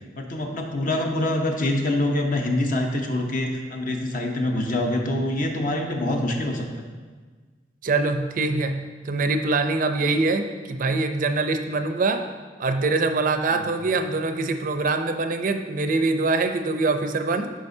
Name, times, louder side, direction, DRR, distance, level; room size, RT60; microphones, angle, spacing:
voice 1, 0.1-6.9 10.0-10.1 13.5-13.7, left 1 dB, 50° left, 2 dB, 0.8 m, -25 dB
voice 2, 7.8-12.2 12.6-17.5, right 3 dB, 50° right, 7 dB, 0.4 m, -24 dB
10.5 x 5.0 x 2.7 m, 1.4 s
head